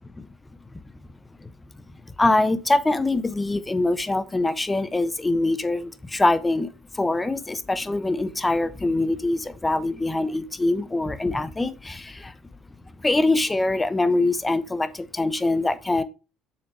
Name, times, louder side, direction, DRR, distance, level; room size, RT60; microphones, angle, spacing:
voice 1, 2.2-6.7 6.9-12.3 13.0-16.0, left 2 dB, 15° left, 1.0 m, -23 dB
7.1 x 6.0 x 3.3 m
hypercardioid pair, 60°, 0 cm